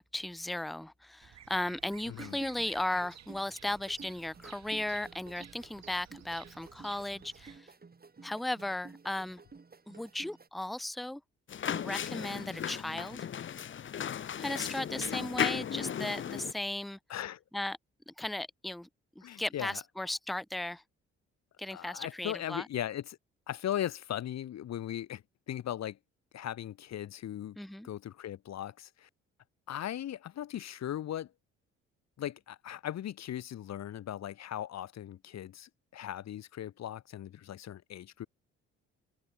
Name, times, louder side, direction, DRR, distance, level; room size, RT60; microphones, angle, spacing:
voice 1, 0.0-7.7 8.2-9.4 9.9-11.2 11.7-13.2 14.4-17.0 17.5-17.8 18.1-18.9 19.2-20.8 21.6-22.7 27.6-27.9, left 1 dB, ahead, 0.6 m, -36 dB
Bird vocalization bird call bird song, 1.2-7.6, right 10 dB, 55° right, 2.0 m, -55 dB
sound 1, 1.8-10.5, right 4 dB, 30° right, 3.2 m, -53 dB
voice 2, 2.1-2.4 17.1-17.4 19.2-19.8 21.7-23.2 23.5-26.0 26.3-27.6 27.8-29.1 29.7-31.3 32.2-38.3, left 11 dB, 55° left, 1.2 m, -38 dB
sound 2, 11.5-16.5, left 9 dB, 40° left, 0.8 m, -35 dB
open air
hypercardioid pair, 55°, 32 cm